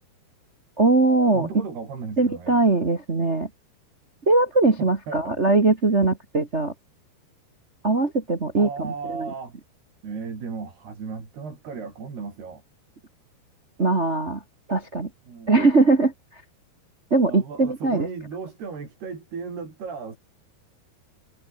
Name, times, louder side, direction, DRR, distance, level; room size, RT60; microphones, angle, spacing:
voice 1, 0.8-1.5 2.2-3.5 4.3-6.7 7.8-9.3 13.8-14.4 14.7-15.1 15.5-16.1 17.1-18.1, right 3 dB, 50° right, 0.7 m, -21 dB
voice 2, 1.3-2.6 4.8-5.4 8.6-9.6 10.0-12.6 15.3-15.6 17.2-20.2, right 5 dB, 70° right, 8.0 m, -35 dB
omnidirectional pair, 4.8 m